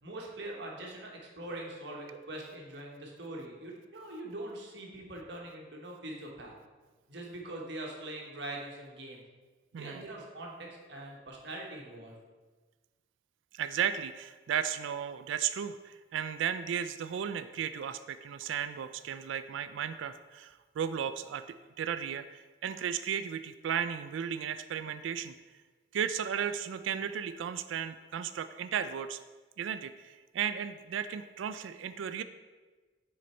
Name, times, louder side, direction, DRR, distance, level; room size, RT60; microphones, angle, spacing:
voice 1, 0.0-6.5 7.1-9.2 9.7-12.2, right 1 dB, 65° right, -1 dB, 1.1 m, -43 dB
voice 2, 13.5-25.3 25.9-29.2 29.6-32.2, right 8 dB, 85° right, 12 dB, 0.3 m, -35 dB
6.3 x 3.9 x 4.3 m, 1.3 s
head